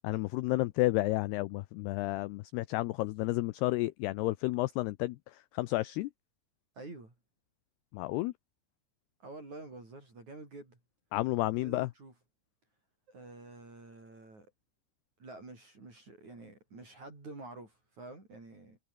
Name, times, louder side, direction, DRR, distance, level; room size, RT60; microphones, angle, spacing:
voice 1, 0.0-5.2 5.5-6.1 7.9-8.3 11.1-11.9, left 19 dB, 85° left, 2.3 m, -31 dB
voice 2, 6.8-7.1 9.2-10.8 11.6-12.1 13.1-14.5 15.2-18.8, right 2 dB, 35° right, 8.9 m, -48 dB
omnidirectional pair, 5.5 m